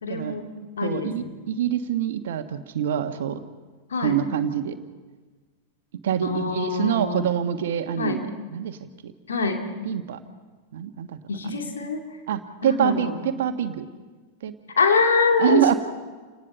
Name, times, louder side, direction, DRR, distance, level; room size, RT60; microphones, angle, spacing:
voice 1, 0.0-0.4 0.8-1.3 3.9-4.2 6.2-7.3 8.0-8.2 9.3-9.7 11.3-12.0 12.6-13.1 14.8-15.8, left 4 dB, 70° left, 3 dB, 2.7 m, -24 dB
voice 2, 0.8-3.4 4.0-4.8 6.0-8.8 9.0-9.1 9.8-10.2 10.7-11.2 11.4-11.6 12.3-13.8 14.4-14.5 15.4-15.7, right 9 dB, 60° right, 8 dB, 1.5 m, -25 dB
28.5 x 19.0 x 5.7 m, 1.4 s
figure-of-eight pair, 90°, 0 cm